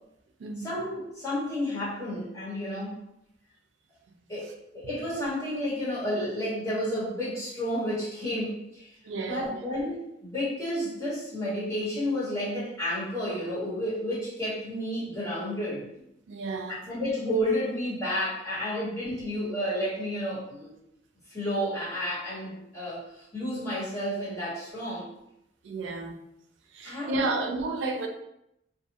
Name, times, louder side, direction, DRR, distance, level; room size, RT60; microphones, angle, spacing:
voice 1, 0.6-3.0 4.3-8.9 9.3-15.9 16.9-20.7 21.3-25.1 26.8-27.4, equal, 15° left, -11 dB, 1.2 m, -31 dB
voice 2, 9.0-9.6 16.3-16.9 25.6-26.2 26.7-28.1, right 3 dB, 90° right, 4 dB, 0.4 m, -32 dB
2.4 x 2.4 x 2.8 m, 0.81 s
head